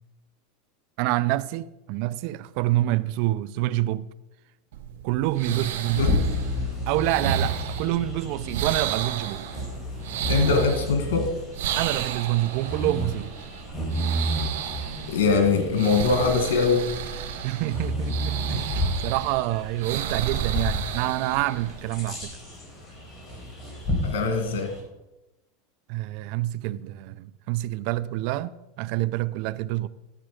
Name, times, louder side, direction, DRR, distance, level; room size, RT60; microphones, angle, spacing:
voice 1, 1.0-4.1 5.0-6.2 6.9-9.5 11.7-13.3 17.4-22.3 25.9-29.9, right 16 dB, 60° right, 0.5 m, -27 dB
sound 1, 4.7-22.3, right 8 dB, 80° right, 1.1 m, -33 dB
Bird vocalization bird call bird song, 5.3-24.8, equal, 30° left, 4.6 m, -32 dB
voice 2, 10.3-11.3 15.1-16.9 24.0-24.7, left 4 dB, 90° left, 2.0 m, -22 dB
12.5 x 7.4 x 5.1 m
supercardioid pair, 125°, 0 cm